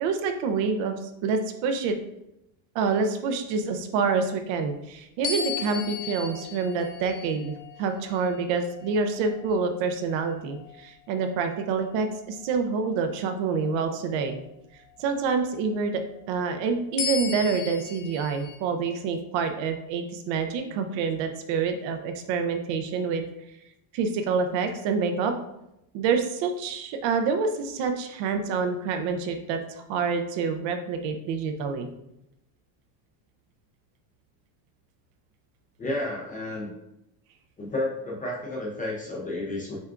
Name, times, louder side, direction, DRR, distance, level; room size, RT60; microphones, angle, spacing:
voice 1, 0.0-2.0 2.7-14.4 15.0-16.0 16.3-23.3 23.9-25.3 25.9-31.9, right 5 dB, 65° right, 6 dB, 0.6 m, -27 dB
sound 1, 5.2-10.0 10.6-10.8 17.0-18.6, left 6 dB, 70° left, 0.9 m, -35 dB
voice 2, 35.8-36.7 37.6-39.8, left 1 dB, 20° left, -3 dB, 0.4 m, -31 dB
6.7 x 2.3 x 2.4 m, 0.85 s
cardioid pair, 155°, 49 cm